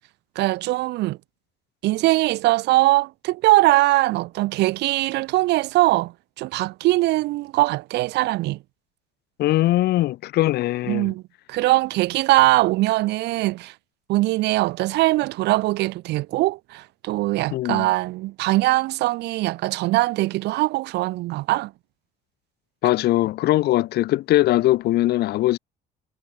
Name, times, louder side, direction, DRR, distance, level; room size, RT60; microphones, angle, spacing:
voice 1, 0.4-1.2 1.8-8.6 10.9-11.2 11.5-13.7 14.1-21.7, right 19 dB, 85° right, 2.0 m, -21 dB
voice 2, 9.4-11.1 17.5-17.9 22.8-25.6, left 16 dB, 70° left, 1.0 m, -21 dB
cardioid pair, 110°, 17 cm